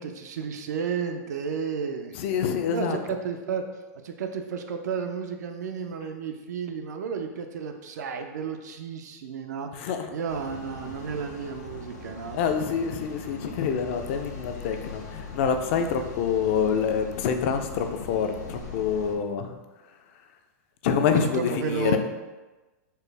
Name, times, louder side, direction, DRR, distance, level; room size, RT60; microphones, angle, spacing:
voice 1, 0.0-2.1 2.7-3.6 4.0-12.4 21.2-22.0, right 6 dB, 85° right, 6 dB, 0.4 m, -32 dB
voice 2, 2.1-3.0 9.7-10.1 12.3-19.6 20.8-22.0, left 7 dB, 45° left, 6 dB, 0.4 m, -26 dB
sound 1, 10.3-19.1, left 3 dB, 85° left, 0.8 m, -41 dB
4.3 x 2.0 x 3.2 m, 1.2 s
supercardioid pair, 150°, 9 cm